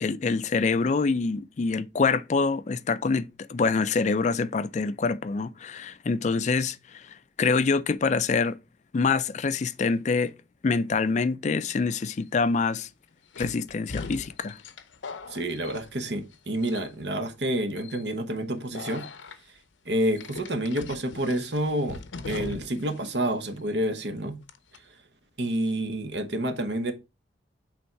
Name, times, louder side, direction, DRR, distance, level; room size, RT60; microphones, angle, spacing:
voice 1, 0.0-8.6 8.9-10.3 10.6-12.9 13.4-14.6, left 4 dB, 40° left, 0.4 m, -26 dB
sound 1, 12.0-12.1 13.3-16.3 16.6-17.1 17.8-18.0 18.7-19.4 20.2-22.9 23.2-23.3 24.5-24.8, left 4 dB, 90° left, 0.6 m, -40 dB
voice 2, 15.3-19.0 19.8-24.4 25.4-26.9, right 1 dB, 65° right, 1.1 m, -29 dB
8.4 x 3.5 x 4.5 m
head